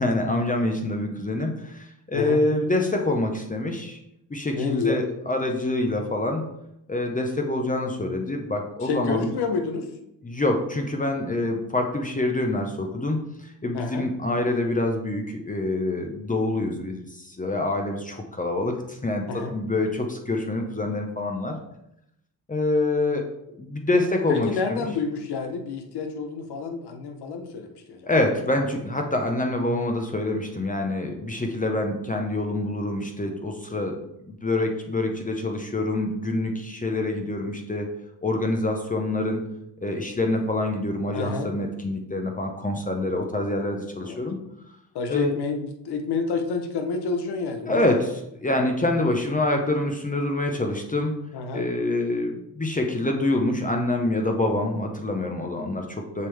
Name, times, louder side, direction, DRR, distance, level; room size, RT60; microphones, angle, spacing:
voice 1, 0.0-4.0 4.3-6.4 6.9-9.3 10.2-21.6 22.5-23.3 23.6-24.9 28.0-34.0 34.3-37.9 38.2-39.4 39.8-44.4 45.1-45.4 47.7-51.2 51.5-56.3, left 2 dB, 20° left, 3 dB, 0.9 m, -26 dB
voice 2, 4.5-5.0 8.8-9.9 13.7-14.1 19.3-19.6 24.3-28.1 41.1-41.5 44.0-44.2 44.9-48.0 51.3-51.6, left 4 dB, 70° left, 5 dB, 1.3 m, -29 dB
6.7 x 5.3 x 3.5 m, 0.82 s
cardioid pair, 85°, 41 cm